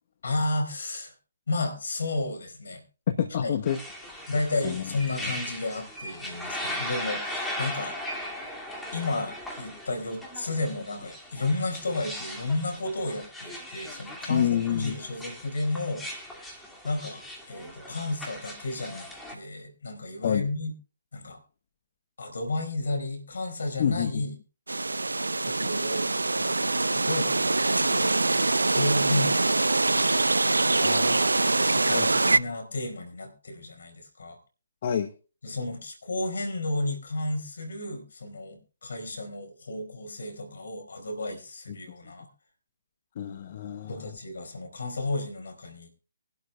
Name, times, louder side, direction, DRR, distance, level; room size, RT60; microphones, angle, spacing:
voice 1, 0.2-1.1 1.5-2.8 3.4-3.5 4.3-8.0 8.9-16.1 16.8-20.7 21.1-21.4 22.2-24.3 25.4-26.1 26.4-30.1 31.4-34.4 35.4-42.3 43.9-45.9, left 2 dB, 65° left, 6 dB, 4.7 m, -32 dB
voice 2, 3.1-4.3 4.6-4.8 14.3-15.0 20.2-20.5 23.8-24.1 30.7-31.4 31.8-32.3 34.8-35.1 43.2-44.1, left 9 dB, 45° left, 8 dB, 0.9 m, -29 dB
sound 1, 3.7-19.3, equal, 5° left, 2.3 m, -38 dB
sound 2, 24.7-32.4, right 2 dB, 85° right, 0.6 m, -24 dB
23.5 x 12.0 x 2.3 m, 0.34 s
figure-of-eight pair, 145°, 0 cm